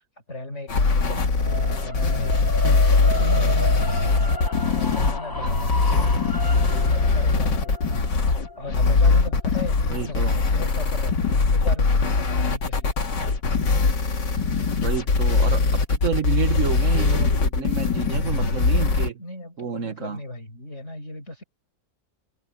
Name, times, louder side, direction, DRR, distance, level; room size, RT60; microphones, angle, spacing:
voice 1, 0.3-4.5 4.8-7.9 8.6-13.1 19.2-21.4, left 1 dB, 40° left, 5.7 m, -36 dB
sound 1, 0.7-19.1, left 4 dB, 85° left, 3.0 m, -21 dB
sound 2, 1.4-11.5, equal, 15° left, 1.0 m, -34 dB
voice 2, 9.8-10.4 14.8-19.2 19.6-20.2, right 6 dB, 50° right, 1.6 m, -30 dB
omnidirectional pair, 1.8 m